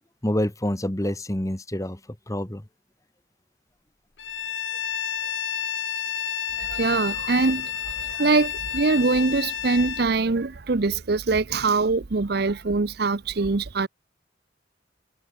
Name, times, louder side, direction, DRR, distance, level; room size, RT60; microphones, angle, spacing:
voice 1, 0.2-2.0 2.3-2.6, left 1 dB, 15° left, 1.4 m, -27 dB
Bowed string instrument, 4.2-10.1, left 9 dB, 75° left, 1.6 m, -30 dB
voice 2, 6.6-13.9, right 3 dB, 55° right, 0.7 m, -23 dB
head